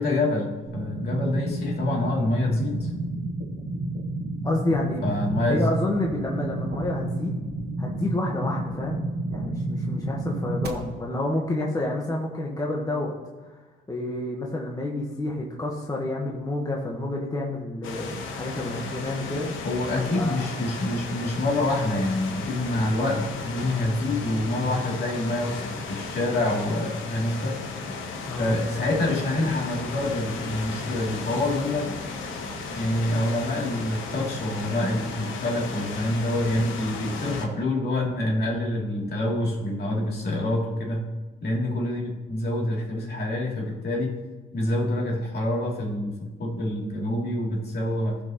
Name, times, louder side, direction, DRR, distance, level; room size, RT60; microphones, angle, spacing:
voice 1, 0.0-2.9 5.0-5.7 19.6-27.6 28.4-31.9 32.7-41.1 41.4-44.2 44.5-48.2, left 1 dB, 55° left, -3 dB, 2.8 m, -26 dB
sound 1, 0.7-10.7, right 2 dB, 55° right, 1.3 m, -30 dB
voice 2, 4.4-5.0 5.5-7.4 7.8-9.0 9.3-13.1 13.5-13.6 13.9-19.6 19.9-20.7 28.3-28.5, left 1 dB, 20° left, -1 dB, 1.3 m, -29 dB
sound 2, 17.8-37.5, left 4 dB, 80° left, 1.1 m, -35 dB
15.0 x 5.3 x 3.0 m, 1.3 s
cardioid pair, 90°, 20 cm